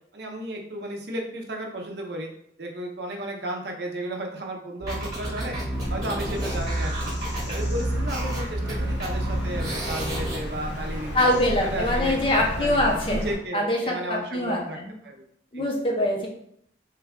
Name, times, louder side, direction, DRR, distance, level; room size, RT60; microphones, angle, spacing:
voice 1, 0.1-2.3 2.6-5.6 5.9-7.1 7.4-12.2 12.6-12.8 13.1-14.8 15.0-15.3 15.5-15.7, right 1 dB, 60° right, 1 dB, 0.6 m, -34 dB
sound 1, 4.8-10.4, right 1 dB, 20° right, 1.1 m, -29 dB
Bird vocalization bird call bird song, 5.7-13.3, left 1 dB, 70° left, 0.7 m, -34 dB
voice 2, 11.1-13.2 13.5-14.9 15.5-16.3, left 1 dB, 30° left, 0 dB, 0.5 m, -24 dB
3.2 x 2.3 x 3.5 m, 0.69 s
head